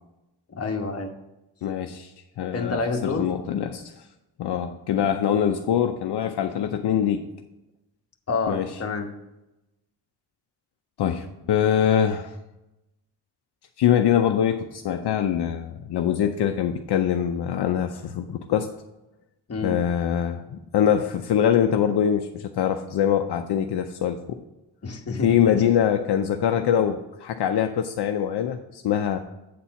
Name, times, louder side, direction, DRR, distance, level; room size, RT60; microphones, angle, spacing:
voice 1, 0.5-1.1 2.5-3.3 4.9-5.1 8.3-9.1 19.5-19.8 24.8-25.6, left 3 dB, 35° left, 3 dB, 1.1 m, -28 dB
voice 2, 1.6-2.1 2.4-4.1 4.4-7.2 8.5-8.7 11.0-12.4 13.8-18.7 19.6-24.4 25.2-29.2, left 9 dB, 65° left, 6 dB, 0.6 m, -23 dB
8.5 x 4.2 x 5.7 m, 0.95 s
cardioid pair, 105°, 43 cm